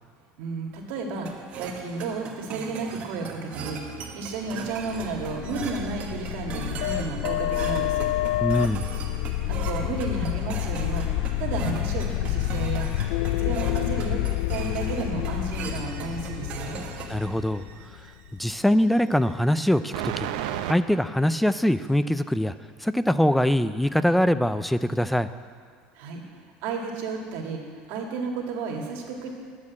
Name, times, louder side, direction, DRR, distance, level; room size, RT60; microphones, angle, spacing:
voice 1, 0.4-1.3 1.5-8.1 9.5-11.1 11.4-12.9 13.4-16.8 26.0-26.2 26.6-29.3, right 4 dB, 65° right, 0 dB, 2.1 m, -32 dB
sound 1, 1.3-17.3, right 6 dB, 40° right, 1.3 m, -38 dB
sound 2, 4.7-18.4, left 16 dB, 80° left, 0.3 m, -29 dB
voice 2, 8.4-8.9 17.1-17.6 18.4-20.3 20.7-22.5 22.8-25.3, equal, ahead, 12 dB, 0.4 m, -23 dB
sound 3, 15.7-18.1 18.9-20.7, right 11 dB, 85° right, 0.7 m, -34 dB
10.5 x 7.4 x 9.4 m, 2.1 s
cardioid pair, 145°, 4 cm